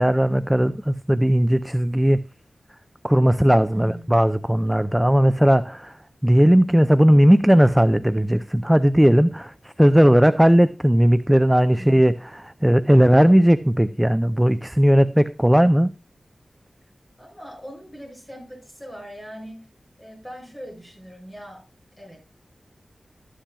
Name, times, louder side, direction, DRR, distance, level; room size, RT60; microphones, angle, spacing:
voice 1, 0.0-2.2 3.0-6.0 6.2-15.9, equal, 5° right, 0.4 m, -17 dB
voice 2, 3.7-4.1 11.7-12.1 17.2-19.7 20.0-21.6 22.0-22.2, equal, 15° left, 7.1 m, -40 dB
13.0 x 10.0 x 2.3 m
wide cardioid pair, 90°, 0 cm